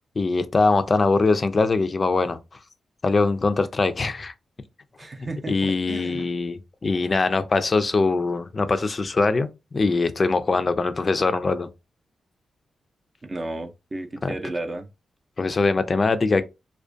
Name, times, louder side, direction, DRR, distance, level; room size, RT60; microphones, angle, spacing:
voice 1, 0.2-2.4 3.0-4.3 5.2-11.7 14.2-14.3 15.4-16.4, left 3 dB, 40° left, 0.3 m, -22 dB
voice 2, 5.0-6.3 13.2-14.9, right 2 dB, 35° right, 0.5 m, -33 dB
2.4 x 2.1 x 2.5 m
cardioid pair, 65°, 0 cm